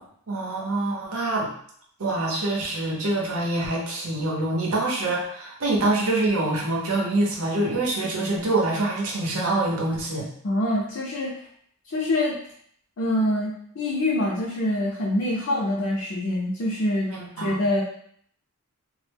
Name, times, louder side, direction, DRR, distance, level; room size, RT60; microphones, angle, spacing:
voice 1, 0.3-1.5 2.0-10.3 15.5-15.6 17.1-17.6, right 2 dB, 75° right, -2 dB, 0.7 m, -25 dB
voice 2, 10.4-11.3 11.9-12.4 13.0-17.1 17.4-17.8, left 1 dB, 60° left, -4 dB, 0.5 m, -25 dB
2.0 x 2.0 x 3.3 m, 0.63 s
head